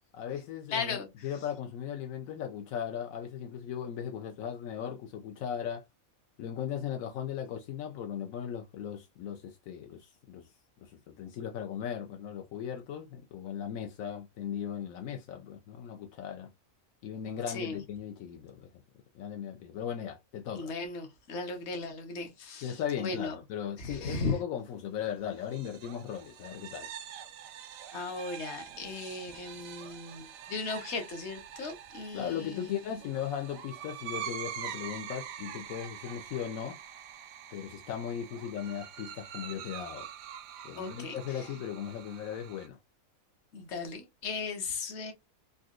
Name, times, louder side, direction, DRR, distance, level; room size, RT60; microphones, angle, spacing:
voice 1, 0.1-5.8 6.4-10.5 10.8-16.5 17.0-18.7 19.1-20.7 22.6-26.9 32.1-36.8 37.5-40.1 40.6-42.8, left 9 dB, 80° left, 1.0 m, -37 dB
voice 2, 0.7-1.1 17.5-17.8 20.5-23.4 23.8-24.3 27.9-32.7 40.7-41.5 43.5-45.1, left 4 dB, 60° left, 1.2 m, -37 dB
sound 1, 25.4-42.7, right 9 dB, 85° right, 1.0 m, -45 dB
3.9 x 2.4 x 2.4 m
omnidirectional pair, 1.4 m